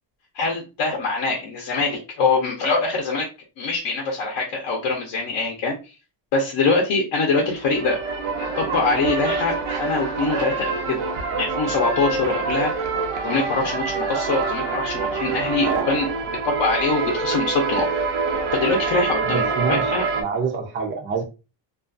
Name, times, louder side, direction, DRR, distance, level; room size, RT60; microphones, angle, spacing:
voice 1, 0.3-3.3 3.6-5.8 6.3-8.0 8.6-11.0 11.4-12.7 13.2-16.1 16.4-17.9 18.5-20.0, left 3 dB, 60° left, 0.7 m, -23 dB
sound 1, 7.4-20.2, right 4 dB, 85° right, 0.7 m, -26 dB
voice 2, 19.3-21.2, right 5 dB, 25° right, 0.5 m, -26 dB
2.5 x 2.4 x 2.4 m
cardioid pair, 145°, 47 cm